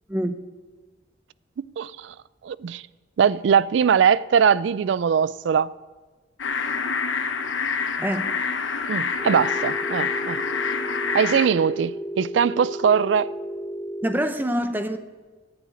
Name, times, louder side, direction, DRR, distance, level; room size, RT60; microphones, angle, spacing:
voice 1, 1.8-2.1 2.4-2.8 3.2-5.7 8.9-10.4 11.1-13.3, right 7 dB, 70° right, 0.3 m, -21 dB
sound 1, 6.4-11.5, left 5 dB, 85° left, 1.1 m, -27 dB
voice 2, 8.0-8.3 14.0-15.0, equal, 10° right, 0.7 m, -25 dB
Telephone, 9.2-14.2, equal, 20° left, 2.1 m, -33 dB
10.5 x 9.4 x 8.8 m
head